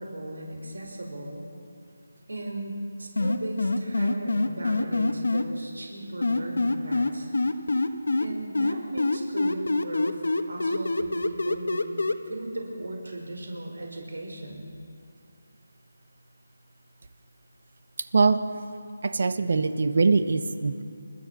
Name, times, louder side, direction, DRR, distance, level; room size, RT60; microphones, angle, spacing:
voice 1, 0.0-1.4 2.3-7.3 8.2-10.2 10.5-14.7, right 1 dB, 85° right, 1 dB, 5.6 m, -37 dB
sound 1, 3.2-5.4 6.2-8.3 8.5-12.1, left 2 dB, 80° left, 1.5 m, -24 dB
voice 2, 18.0-18.4 19.0-20.8, right 4 dB, 50° right, 11 dB, 1.3 m, -23 dB
29.0 x 13.5 x 7.0 m, 2.4 s
figure-of-eight pair, 175°, 0 cm